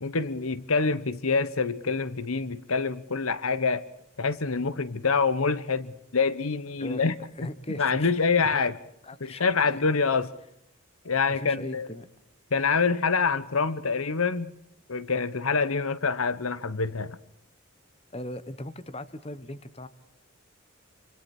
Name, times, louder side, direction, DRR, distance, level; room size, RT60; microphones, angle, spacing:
voice 1, 0.0-3.8 4.2-7.1 7.7-8.7 9.2-10.3 11.0-11.9 12.5-14.5 14.9-17.2, left 4 dB, 75° left, 1.1 m, -26 dB
voice 2, 6.8-8.7 9.0-9.8 11.3-12.1 18.1-19.9, left 1 dB, 25° left, 1.2 m, -39 dB
26.5 x 25.5 x 4.4 m
head